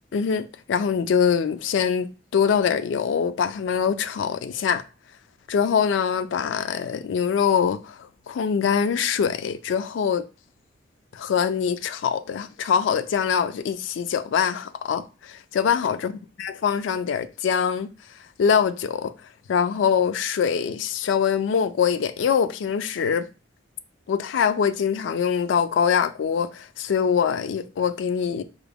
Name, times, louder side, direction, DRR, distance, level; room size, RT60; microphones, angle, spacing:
voice 1, 0.1-4.8 5.5-8.0 8.3-10.2 11.1-16.1 16.4-17.9 18.4-19.1 19.5-23.2 24.1-28.4, left 7 dB, 80° left, 0.3 m, -23 dB
4.7 x 2.0 x 3.4 m
head